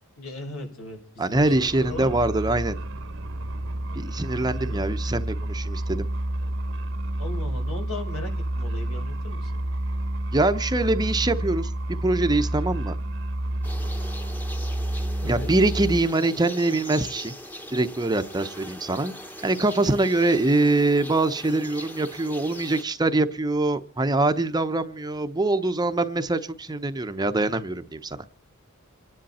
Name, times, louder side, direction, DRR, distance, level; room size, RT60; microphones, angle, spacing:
voice 1, 0.2-2.1 4.6-4.8 7.2-9.6 15.2-15.5, left 2 dB, 75° left, 3 dB, 5.2 m, -38 dB
voice 2, 1.2-2.8 3.9-6.1 10.3-11.7 12.0-13.0 15.3-17.3 17.7-19.1 19.4-28.2, right 2 dB, 20° right, 9 dB, 0.7 m, -24 dB
sound 1, 1.3-16.0, right 1 dB, 60° right, 0.9 m, -29 dB
sound 2, 13.6-22.8, equal, 10° left, 1.1 m, -41 dB
27.0 x 10.5 x 4.2 m, 0.41 s
head